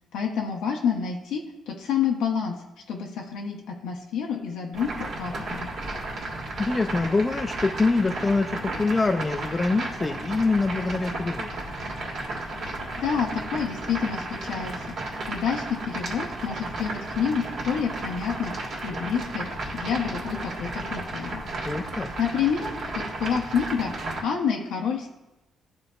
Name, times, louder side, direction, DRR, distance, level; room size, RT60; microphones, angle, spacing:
voice 1, 0.1-2.5 2.9-5.7 12.6-14.7 15.3-19.5 19.7-21.4 22.2-23.9 24.2-25.1, left 7 dB, 90° left, 0 dB, 0.7 m, -28 dB
sound 1, 4.7-24.2, right 2 dB, 65° right, 1.6 m, -34 dB
voice 2, 6.6-11.5 21.6-22.1, left 3 dB, 25° left, 5 dB, 0.3 m, -25 dB
11.5 x 3.9 x 2.3 m, 1.0 s
cardioid pair, 90°, 0 cm